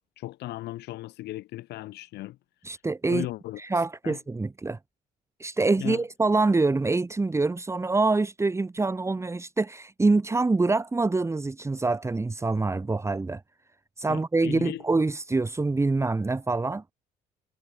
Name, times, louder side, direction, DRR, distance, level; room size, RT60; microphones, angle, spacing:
voice 1, 0.2-2.7 3.1-4.2 5.8-6.0 14.1-14.8, left 16 dB, 80° left, 7.3 m, -37 dB
voice 2, 2.6-3.3 3.6-4.8 5.4-13.4 14.0-16.8, right 3 dB, 15° right, 2.3 m, -25 dB
cardioid pair, 110°, 17 cm